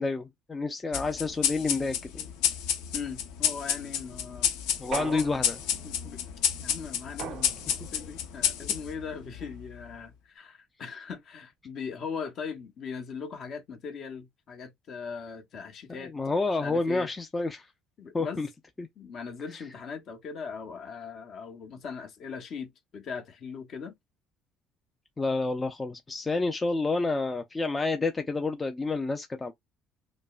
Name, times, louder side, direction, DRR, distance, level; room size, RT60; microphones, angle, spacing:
voice 1, 0.0-2.3 4.8-5.6 16.0-17.7 18.1-18.5 18.8-18.9 25.2-29.5, left 3 dB, 20° left, 0.4 m, -29 dB
sound 1, 0.9-9.8, left 9 dB, 90° left, 0.7 m, -31 dB
voice 2, 2.9-4.5 4.9-5.3 5.8-6.2 6.6-16.1 16.6-17.1 18.0-18.4 19.0-23.9 26.3-26.4, left 5 dB, 50° left, 1.0 m, -39 dB
sound 2, 4.9-5.9 7.2-8.0, right 11 dB, 60° right, 0.4 m, -39 dB
5.1 x 2.1 x 2.4 m
cardioid pair, 120°, 0 cm